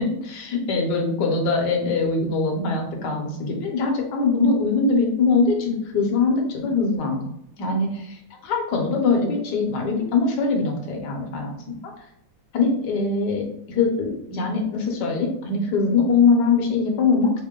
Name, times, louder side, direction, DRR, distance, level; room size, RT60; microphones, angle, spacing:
voice 1, 0.0-7.3 7.6-11.8 12.5-17.4, left 4 dB, 65° left, 1 dB, 1.2 m, -22 dB
3.6 x 2.1 x 3.6 m, 0.77 s
omnidirectional pair, 2.2 m